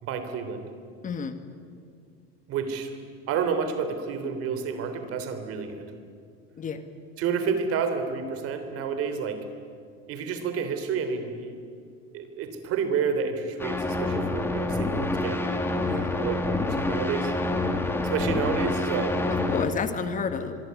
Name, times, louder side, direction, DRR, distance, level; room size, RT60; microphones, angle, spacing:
voice 1, 0.0-0.6 2.5-2.9 3.3-5.9 7.2-9.5 10.1-11.6 12.1-15.4 16.2-17.3 18.0-19.2, right 6 dB, 45° right, 9 dB, 3.4 m, -30 dB
voice 2, 1.0-1.4 6.6-6.8 15.8-16.2 19.5-20.6, left 6 dB, 25° left, 9 dB, 1.7 m, -30 dB
sound 1, 13.6-19.6, left 2 dB, 5° left, 2.1 m, -27 dB
25.5 x 21.5 x 9.7 m, 2.3 s
cardioid pair, 160°, 31 cm